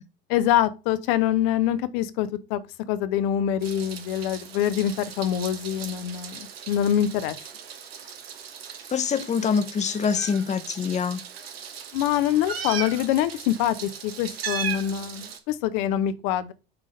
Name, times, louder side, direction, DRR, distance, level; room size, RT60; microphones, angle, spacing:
voice 1, 0.3-2.6 2.9-7.4 11.9-16.5, left 11 dB, 60° left, 0.9 m, -25 dB
Meow, 3.6-15.4, right 7 dB, 75° right, 1.4 m, -38 dB
voice 2, 8.9-11.2, left 6 dB, 25° left, 0.9 m, -25 dB
9.0 x 3.8 x 5.2 m
figure-of-eight pair, 70°, 30 cm